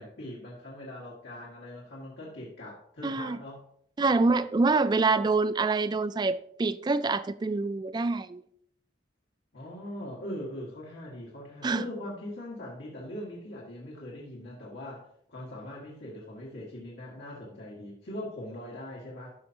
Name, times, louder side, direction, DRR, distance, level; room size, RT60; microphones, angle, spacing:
voice 1, 0.0-3.6 9.5-19.3, left 1 dB, 90° left, 1.8 m, -41 dB
voice 2, 3.0-3.4 4.0-8.4 11.6-11.9, right 3 dB, 25° right, 0.3 m, -26 dB
13.0 x 5.7 x 2.8 m
head